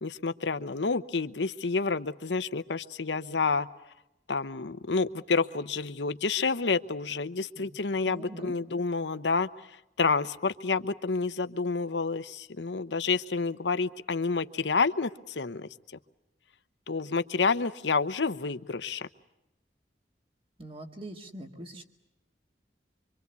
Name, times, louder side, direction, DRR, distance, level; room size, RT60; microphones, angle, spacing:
voice 1, 0.0-3.7 4.3-9.5 10.0-15.7 16.9-19.1, left 4 dB, 80° left, 12 dB, 0.9 m, -29 dB
voice 2, 8.0-8.5 20.6-21.8, right 1 dB, 30° right, 4 dB, 2.1 m, -43 dB
25.5 x 25.0 x 8.3 m, 0.89 s
head